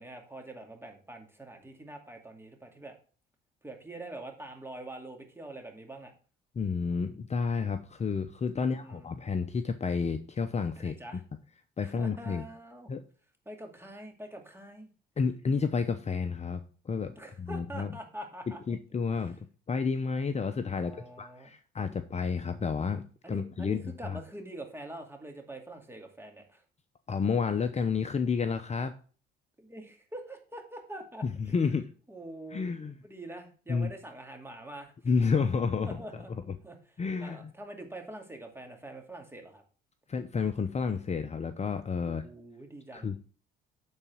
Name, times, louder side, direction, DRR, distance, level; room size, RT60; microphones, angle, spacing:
voice 1, 0.0-2.9 3.6-6.1 8.6-9.1 10.8-11.2 11.8-12.9 13.5-14.9 17.2-18.6 20.8-21.5 23.2-26.6 29.6-31.6 32.1-32.7 33.0-34.9 35.8-36.3 36.6-36.8 37.2-39.6 42.0-43.1, right 1 dB, 10° right, 4 dB, 2.3 m, -45 dB
voice 2, 6.6-11.2 11.8-12.4 12.9-13.0 15.2-17.1 17.4-17.9 18.7-23.0 23.3-24.2 27.1-28.9 31.2-31.9 32.5-33.0 33.7-33.9 35.0-36.6 37.0-37.5 40.1-42.2 42.9-43.2, left 5 dB, 30° left, 8 dB, 0.8 m, -30 dB
8.7 x 4.1 x 6.2 m, 0.39 s
supercardioid pair, 70°, 21 cm